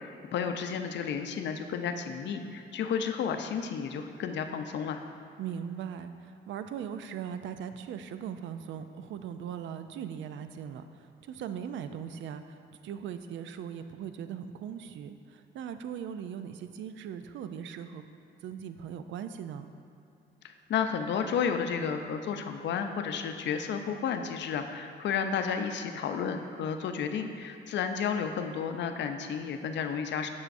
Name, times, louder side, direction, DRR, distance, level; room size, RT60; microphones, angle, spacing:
voice 1, 0.0-5.0 20.4-30.3, left 7 dB, 65° left, 6 dB, 0.5 m, -32 dB
voice 2, 5.4-12.6 12.8-18.0 18.4-19.7, right 8 dB, 70° right, 9 dB, 0.4 m, -39 dB
7.9 x 5.5 x 2.6 m, 2.7 s
cardioid pair, 90°, 20 cm